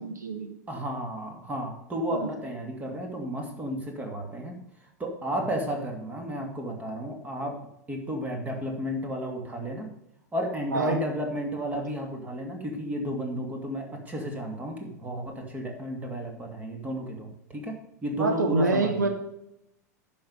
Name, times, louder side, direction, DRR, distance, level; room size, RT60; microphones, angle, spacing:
voice 1, 0.0-0.5 2.1-2.3 10.7-11.0 18.2-19.1, right 3 dB, 75° right, 4 dB, 1.7 m, -26 dB
voice 2, 0.7-7.6 7.9-9.9 10.3-19.1, equal, 15° right, 3 dB, 2.5 m, -33 dB
10.5 x 6.1 x 5.5 m, 0.82 s
figure-of-eight pair, 90°, 9 cm